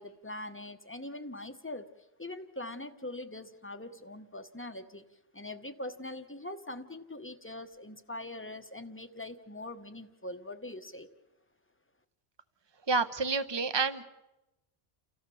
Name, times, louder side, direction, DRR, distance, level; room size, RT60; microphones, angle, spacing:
voice 1, 0.0-1.9 2.2-5.0 5.3-11.1, left 1 dB, 10° left, 8 dB, 0.9 m, -42 dB
voice 2, 12.9-14.0, right 4 dB, 25° right, 12 dB, 0.9 m, -29 dB
29.5 x 15.0 x 7.0 m, 0.97 s
omnidirectional pair, 1.1 m